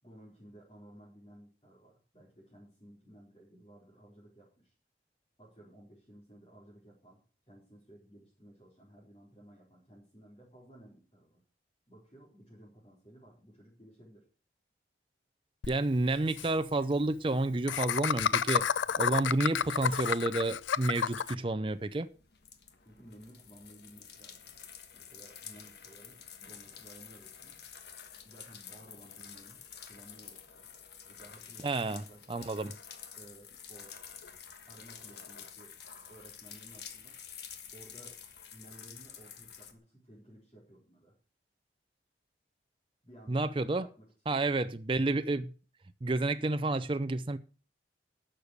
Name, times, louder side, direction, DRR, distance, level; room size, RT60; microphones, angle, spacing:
voice 1, 0.0-4.7 5.4-7.2 7.5-11.4 11.9-14.2 22.8-24.5 24.9-27.6 28.2-30.7 31.1-32.5 33.1-34.0 34.7-35.7 36.1-37.2 37.7-38.2 38.5-41.1 43.0-44.4 44.9-45.2, right 1 dB, 30° left, 4.2 m, -56 dB
Laughter, 15.6-15.7 16.0-16.1 16.3-16.5 17.7-21.3, left 8 dB, 90° left, 0.5 m, -30 dB
voice 2, 15.7-22.1 31.6-32.0 32.3-32.7 43.3-43.9 44.3-45.4 46.0-47.4, right 2 dB, 30° right, 0.5 m, -30 dB
sound 1, 21.7-39.7, left 8 dB, 65° left, 1.4 m, -50 dB
11.5 x 6.7 x 6.5 m
head